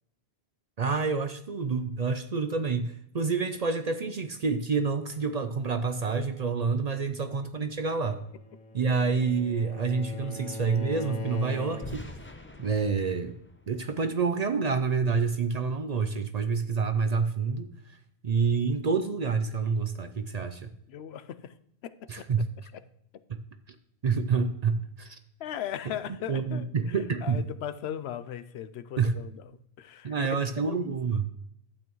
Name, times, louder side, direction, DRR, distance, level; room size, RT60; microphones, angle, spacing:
voice 1, 0.8-8.2 8.7-12.1 12.6-13.3 13.7-18.0 18.2-20.7 22.1-22.5 23.7-23.8 24.0-25.2 26.3-27.5 29.0-29.2 30.0-31.2, right 5 dB, 50° right, 9 dB, 0.6 m, -28 dB
Bowed string instrument, 8.2-12.2, left 2 dB, 45° left, 1.0 m, -40 dB
sound 1, 11.8-14.8, left 1 dB, 15° left, 0.6 m, -45 dB
voice 2, 20.9-21.5 21.8-22.3 25.4-26.9 27.2-29.4 29.8-30.3 30.6-30.9, left 10 dB, 80° left, 12 dB, 0.8 m, -38 dB
12.0 x 8.4 x 3.0 m, 0.73 s
omnidirectional pair, 1.1 m